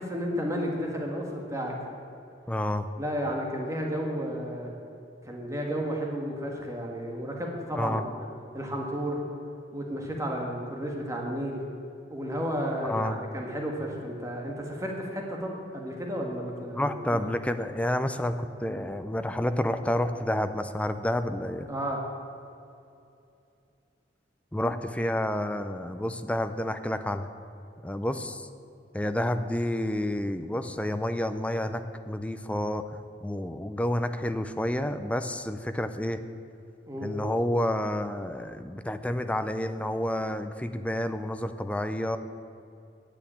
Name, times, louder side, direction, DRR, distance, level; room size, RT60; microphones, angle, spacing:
voice 1, 0.0-1.7 3.0-4.7 5.2-8.3 8.5-9.2 9.7-11.6 12.1-17.2 21.7-22.0 36.9-37.1, equal, 15° right, 0 dB, 1.5 m, -32 dB
voice 2, 2.5-2.9 7.8-8.0 12.8-13.2 16.7-21.7 24.5-27.3 27.8-28.5 28.9-32.8 33.2-36.2 37.0-42.2, left 1 dB, 5° left, 9 dB, 0.5 m, -29 dB
10.0 x 8.1 x 8.6 m, 2.6 s
head